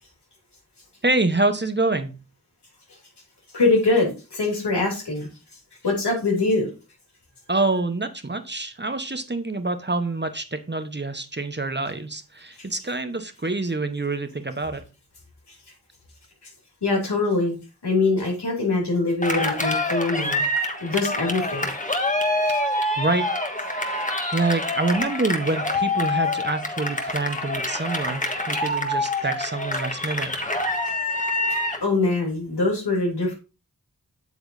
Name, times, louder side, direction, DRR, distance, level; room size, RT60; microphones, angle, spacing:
voice 1, 1.0-2.1 7.5-14.8 23.0-23.3 23.7-30.3, right 2 dB, 25° right, 1.0 m, -26 dB
voice 2, 3.5-5.3 5.8-6.7 16.8-17.5 17.8-20.4 20.8-21.7 31.5-33.3, left 3 dB, 90° left, 3.1 m, -23 dB
Cheering, 19.2-31.9, left 1 dB, 20° left, 1.4 m, -26 dB
8.2 x 7.1 x 2.6 m
wide cardioid pair, 40°, 39 cm